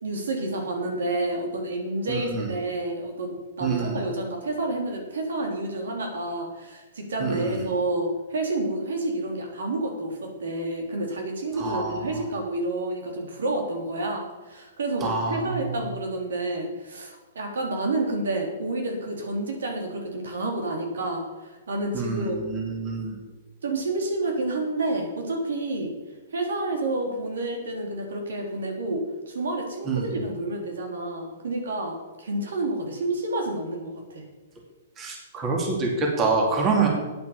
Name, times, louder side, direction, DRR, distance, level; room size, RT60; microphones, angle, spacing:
voice 1, 0.0-22.4 23.6-25.9 26.3-34.3, right 2 dB, 85° right, 2 dB, 3.1 m, -29 dB
voice 2, 2.1-2.5 3.6-4.0 7.2-7.6 11.6-12.2 15.0-15.7 21.9-23.2 29.9-30.2 35.0-36.9, right 4 dB, 25° right, 0 dB, 2.7 m, -26 dB
9.0 x 8.2 x 7.2 m, 1.2 s
hypercardioid pair, 140°, 0 cm